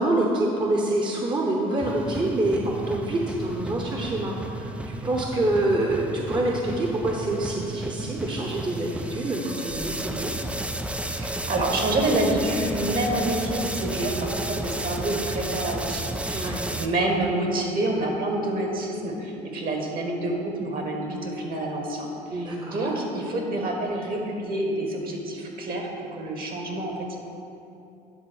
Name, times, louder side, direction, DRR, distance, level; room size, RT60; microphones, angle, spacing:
voice 1, 0.0-10.3 16.3-16.6 22.3-22.9, right 1 dB, 25° right, -1 dB, 1.0 m, -26 dB
sound 1, 1.8-16.9, right 1 dB, 5° right, 0.4 m, -32 dB
voice 2, 11.1-27.2, right 1 dB, 50° right, 1 dB, 1.7 m, -28 dB
10.0 x 3.8 x 6.3 m, 2.8 s
supercardioid pair, 75°, 19 cm